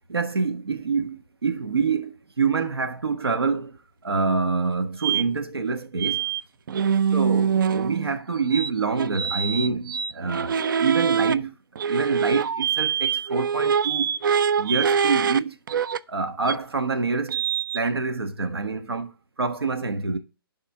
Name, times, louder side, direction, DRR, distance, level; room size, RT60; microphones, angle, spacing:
voice 1, 0.1-6.3 7.1-11.6 11.8-14.1 14.6-15.6 16.1-17.4 17.7-20.2, right 4 dB, 80° right, 1.4 m, -26 dB
sound 1, 5.0-5.2 6.0-6.4 6.7-8.2 8.5-11.3 11.8-15.4 15.7-16.0 16.5-16.6 17.3-17.8, right 7 dB, 55° right, 0.4 m, -24 dB
11.0 x 3.7 x 3.5 m
figure-of-eight pair, 135°, 13 cm